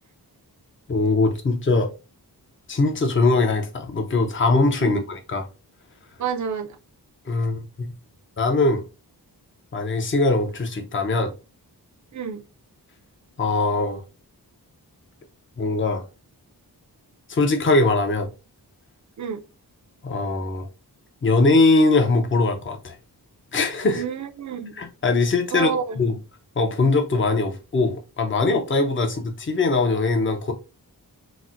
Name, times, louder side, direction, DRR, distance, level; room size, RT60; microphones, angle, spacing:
voice 1, 0.9-1.9 2.7-5.5 7.3-7.9 8.4-8.8 9.7-11.3 13.4-14.0 15.6-16.0 17.3-18.3 20.0-20.7 21.2-23.0 23.5-24.0 24.8-25.7 26.0-26.1 26.6-30.5, left 3 dB, 30° left, 0.6 m, -21 dB
voice 2, 6.2-6.8 12.1-12.5 19.2-19.4 23.9-24.8 25.5-26.1, right 7 dB, 50° right, 0.5 m, -29 dB
4.1 x 2.1 x 2.4 m
wide cardioid pair, 100°, 40 cm